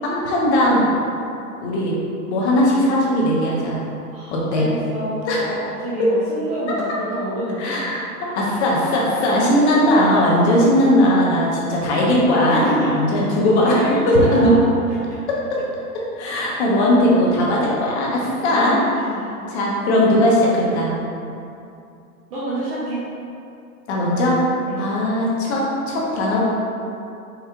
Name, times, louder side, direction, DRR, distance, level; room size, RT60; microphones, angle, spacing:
voice 1, 0.0-0.9 1.6-2.0 2.3-3.8 4.3-4.6 5.2-5.4 6.7-6.8 7.6-13.8 14.1-14.5 16.1-18.8 19.5-20.9 23.9-24.4 24.8-26.5, left 1 dB, 45° left, -4 dB, 1.0 m, -18 dB
voice 2, 4.1-7.8 9.3-9.6 10.1-10.4 12.5-13.2 13.6-15.2 18.4-19.4 22.3-23.0 24.7-24.9, right 1 dB, 35° right, -10 dB, 0.9 m, -28 dB
4.6 x 3.2 x 2.3 m, 2.6 s
hypercardioid pair, 110°, 46 cm